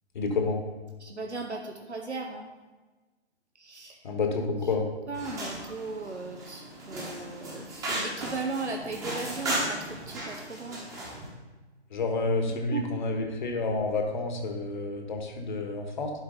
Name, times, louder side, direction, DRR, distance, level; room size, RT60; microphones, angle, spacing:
voice 1, 0.1-0.6 4.0-4.9 11.9-16.1, left 3 dB, 45° left, 3 dB, 1.4 m, -29 dB
voice 2, 1.0-2.5 3.6-4.0 5.1-10.8 12.7-12.9, right 3 dB, 85° right, 3 dB, 1.0 m, -37 dB
sound 1, 5.1-11.3, right 1 dB, 10° right, 1.1 m, -35 dB
11.0 x 4.6 x 3.9 m, 1.2 s
figure-of-eight pair, 135°, 34 cm